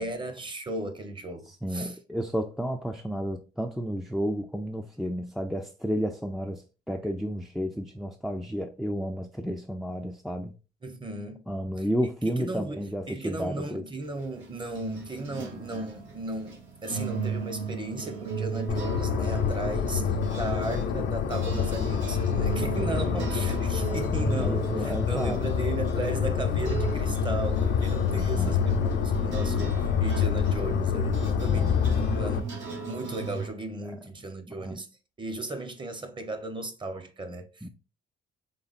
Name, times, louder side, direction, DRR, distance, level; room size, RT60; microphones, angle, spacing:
voice 1, 0.0-2.0 10.8-11.4 11.8-11.9 12.2-31.7 32.1-34.9 35.2-37.7, right 2 dB, 25° right, 0.8 m, -36 dB
voice 2, 1.5-10.5 11.5-13.8 24.4-25.4 28.1-28.6 31.2-31.8 34.6-34.8 37.6-37.7, equal, ahead, 0.4 m, -32 dB
sound 1, 14.0-33.5, right 5 dB, 75° right, 1.3 m, -36 dB
sound 2, 18.7-32.4, left 7 dB, 80° left, 0.6 m, -27 dB
4.0 x 3.4 x 2.4 m
cardioid pair, 90°, 20 cm